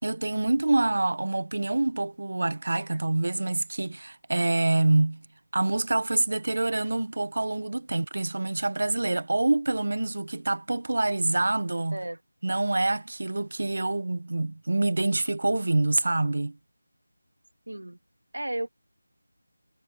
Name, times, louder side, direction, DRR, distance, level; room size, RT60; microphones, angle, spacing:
voice 1, 0.0-5.2 5.5-12.0 12.4-16.6, right 2 dB, 60° right, 1.1 m, -26 dB
voice 2, 17.7-18.0 18.3-18.7, right 1 dB, 80° right, 2.5 m, -34 dB
figure-of-eight pair, 165°, 0 cm